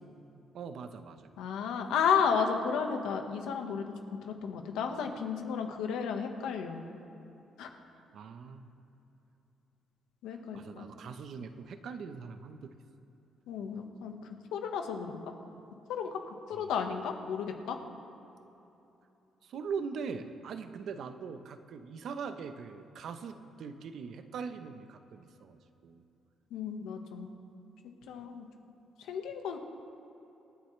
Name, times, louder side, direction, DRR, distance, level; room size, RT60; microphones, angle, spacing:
voice 1, 0.5-1.3 8.1-8.7 10.5-12.7 16.5-16.7 19.4-26.0, right 5 dB, 70° right, 8 dB, 0.9 m, -41 dB
voice 2, 1.4-3.9 4.2-6.8 7.6-7.7 10.2-10.9 13.5-14.2 14.5-15.2 15.9-16.2 16.5-17.8 26.5-27.3 28.1-28.5 29.1-29.6, left 6 dB, 90° left, 4 dB, 1.4 m, -32 dB
26.5 x 10.0 x 3.3 m, 3.0 s
cardioid pair, 90°, 0 cm